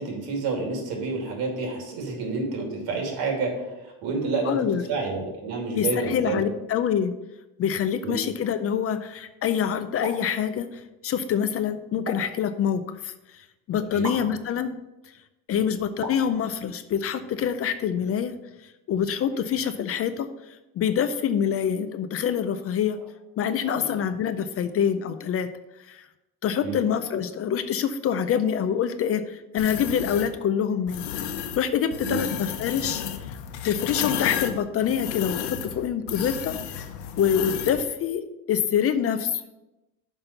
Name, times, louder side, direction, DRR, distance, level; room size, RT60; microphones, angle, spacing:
voice 1, 0.0-3.5 4.0-4.6 4.9-6.4 8.0-8.1 13.9-14.0 23.7-23.9 26.6-26.8 32.0-32.2, right 3 dB, 70° right, 1 dB, 2.6 m, -29 dB
voice 2, 4.4-4.8 5.7-7.1 7.6-14.8 15.5-18.3 18.9-20.3 20.8-23.0 23.4-25.5 25.9-26.1 26.4-31.0 31.5-33.0 33.6-36.6 37.2-38.2 38.5-39.4, left 8 dB, 40° left, 11 dB, 0.5 m, -26 dB
sound 1, 10.0-10.3 12.1-12.4 14.0-14.3 16.0-16.3, right 2 dB, 50° right, 2.1 m, -34 dB
sound 2, 29.6-30.3 30.9-31.6 31.9-37.8, left 9 dB, 85° left, 0.9 m, -32 dB
5.9 x 5.4 x 6.7 m, 1.0 s
cardioid pair, 140°, 38 cm